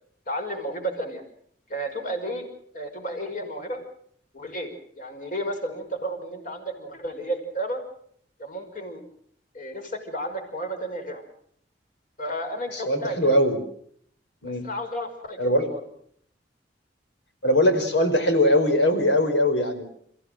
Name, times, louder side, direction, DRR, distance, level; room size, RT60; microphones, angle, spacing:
voice 1, 0.3-1.2 1.7-2.4 2.7-3.8 4.3-7.8 8.4-9.0 9.5-11.2 12.2-13.4 14.5-15.8, right 1 dB, 50° left, 5 dB, 5.5 m, -32 dB
voice 2, 12.7-13.6 14.4-14.6 15.4-15.7 17.4-19.8, left 1 dB, 90° left, 7 dB, 4.9 m, -21 dB
29.5 x 15.5 x 7.9 m, 0.66 s
head